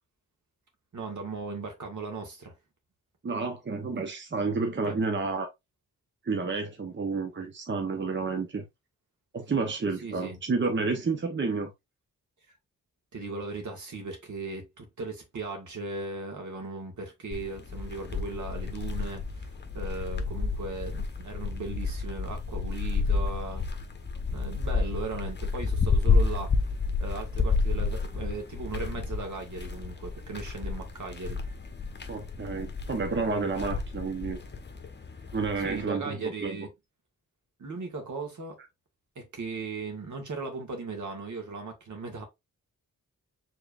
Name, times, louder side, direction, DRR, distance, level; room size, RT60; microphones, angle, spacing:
voice 1, 0.9-2.5 4.8-5.0 10.0-10.4 13.1-19.5 19.7-23.7 24.3-26.7 27.0-31.4 35.6-36.7 37.6-38.6 39.2-42.2, right 3 dB, 65° right, 1.9 m, -37 dB
voice 2, 3.2-5.5 6.2-8.6 9.3-11.7 32.1-34.4 35.3-36.6, right 4 dB, 35° right, 0.9 m, -30 dB
sound 1, 17.3-35.9, left 4 dB, 35° left, 1.0 m, -31 dB
5.0 x 3.8 x 2.5 m
cardioid pair, 80°, 32 cm